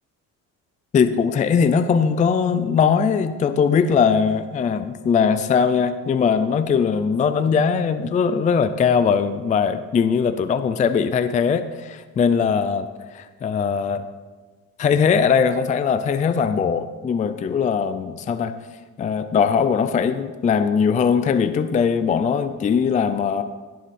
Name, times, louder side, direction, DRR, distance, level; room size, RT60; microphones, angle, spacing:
voice 1, 0.9-14.0 14.8-18.6 19.0-23.4, left 6 dB, 20° left, 11 dB, 0.4 m, -20 dB
16.0 x 10.0 x 4.2 m, 1.4 s
cardioid pair, 145°, 34 cm